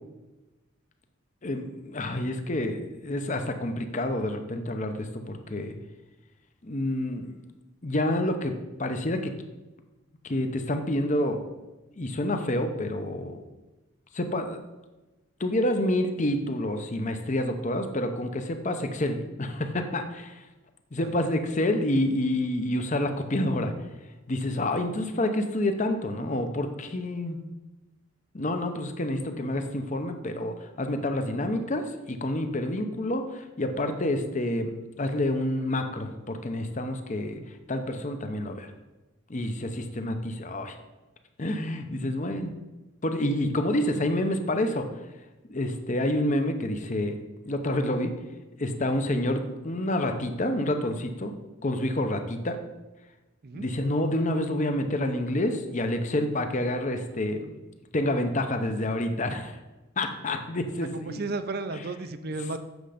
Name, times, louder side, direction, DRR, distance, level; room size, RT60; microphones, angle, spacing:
voice 1, 1.4-5.7 6.6-7.3 7.8-8.5 8.8-9.3 10.2-11.4 12.0-13.4 14.1-14.6 15.4-20.4 20.9-23.7 24.3-27.4 28.3-34.7 35.0-37.4 37.7-38.7 39.3-40.8 41.4-42.5 43.0-44.9 45.5-47.2 47.4-48.1 48.6-51.3 51.6-52.6 53.5-57.5 57.9-59.6 60.0-61.2 61.7-61.8, left 1 dB, 35° left, 7 dB, 0.7 m, -28 dB
voice 2, 60.8-62.6, right 3 dB, 50° right, 11 dB, 0.5 m, -33 dB
8.0 x 6.6 x 5.0 m, 1.1 s
head